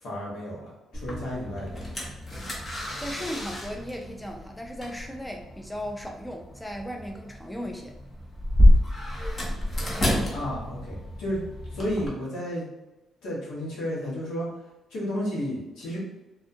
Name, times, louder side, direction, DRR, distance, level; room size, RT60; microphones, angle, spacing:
voice 1, 0.0-1.8 10.3-11.4 11.7-12.7 13.2-14.5 14.9-16.0, equal, 85° left, -6 dB, 1.2 m, -32 dB
sound 1, 0.9-12.1, left 1 dB, 35° left, 0.8 m, -28 dB
voice 2, 3.0-7.9, equal, 5° left, 2 dB, 0.4 m, -36 dB
2.6 x 2.3 x 2.6 m, 0.98 s
cardioid pair, 90°, 0 cm